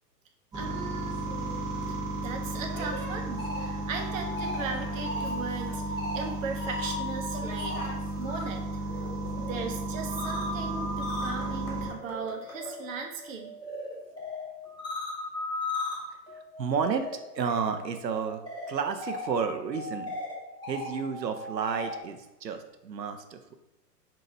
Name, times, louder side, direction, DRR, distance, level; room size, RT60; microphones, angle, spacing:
sound 1, 0.5-11.9, right 2 dB, 10° right, 0.8 m, -34 dB
voice 1, 0.5-1.4 1.9-8.6 8.9-9.0 9.4-13.5 14.1-14.2, right 5 dB, 50° right, 3 dB, 0.8 m, -38 dB
sound 2, 1.1-12.7, left 2 dB, 65° left, 1.2 m, -48 dB
sound 3, 3.2-8.4 8.7-22.0, left 1 dB, 10° left, 1.1 m, -38 dB
voice 2, 16.3-18.4 18.7-20.2 20.7-23.6, right 6 dB, 90° right, 7 dB, 0.6 m, -32 dB
5.3 x 2.8 x 2.7 m, 0.97 s
figure-of-eight pair, 110°, 49 cm